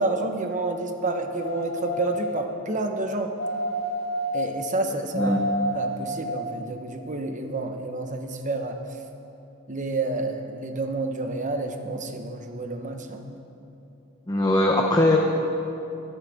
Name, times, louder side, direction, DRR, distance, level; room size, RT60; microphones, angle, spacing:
voice 1, 0.0-3.3 4.3-5.3 5.7-8.8 9.7-13.3, right 2 dB, 35° right, 5 dB, 1.1 m, -29 dB
sound 1, 1.4-2.4 3.4-4.5 5.2-6.4 7.0-7.1, equal, 70° left, 0.9 m, -29 dB
voice 2, 14.3-15.2, left 1 dB, 20° left, 1 dB, 0.8 m, -20 dB
24.0 x 10.0 x 3.6 m, 2.9 s
head